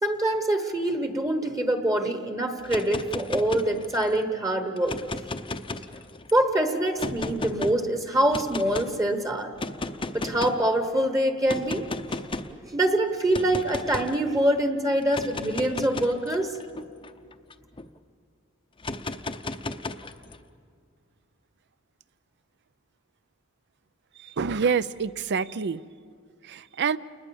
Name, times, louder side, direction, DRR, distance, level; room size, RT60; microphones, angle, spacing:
voice 1, 0.0-5.0 6.3-9.5 10.1-12.2 12.6-16.5, right 1 dB, 15° right, 7 dB, 1.1 m, -25 dB
sound 1, 2.6-4.1 4.8-6.3 7.0-7.7 8.3-8.9 9.6-10.7 11.5-12.6 13.3-14.2 15.0-17.9 18.8-20.4, left 2 dB, 25° left, 0.7 m, -34 dB
voice 2, 24.4-25.8 26.5-27.0, right 6 dB, 55° right, 17 dB, 0.5 m, -26 dB
29.0 x 20.0 x 7.1 m, 2.2 s
head